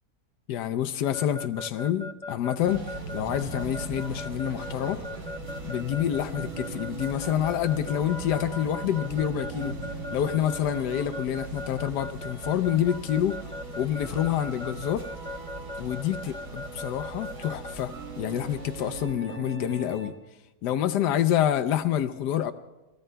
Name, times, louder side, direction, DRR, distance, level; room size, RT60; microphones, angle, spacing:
voice 1, 0.5-2.9 3.1-5.0 5.6-9.8 10.1-13.4 13.8-15.0 15.8-20.2 20.6-22.5, left 10 dB, 85° left, 7 dB, 1.3 m, -27 dB
Keyboard (musical) / Alarm, 1.1-17.7, left 2 dB, 5° left, 0.5 m, -38 dB
sound 1, 2.6-19.1, right 2 dB, 85° right, 4.2 m, -40 dB
sound 2, 2.7-20.4, right 6 dB, 60° right, 1.3 m, -44 dB
29.5 x 19.5 x 2.2 m, 1.1 s
omnidirectional pair, 1.7 m